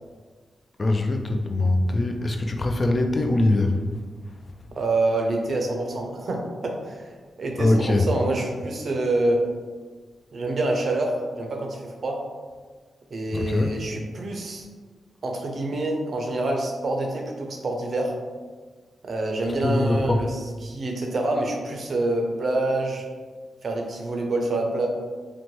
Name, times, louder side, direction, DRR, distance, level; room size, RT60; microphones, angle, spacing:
voice 1, 0.8-3.8 7.6-8.1 13.3-13.8 19.6-20.2, left 2 dB, 40° left, 4 dB, 0.3 m, -22 dB
voice 2, 4.7-7.1 7.4-9.4 10.3-12.2 13.1-14.7 15.2-18.1 19.0-23.0 23.6-24.9, right 2 dB, 60° right, 1 dB, 0.5 m, -26 dB
2.7 x 2.1 x 3.0 m, 1.5 s
cardioid pair, 50°, 0 cm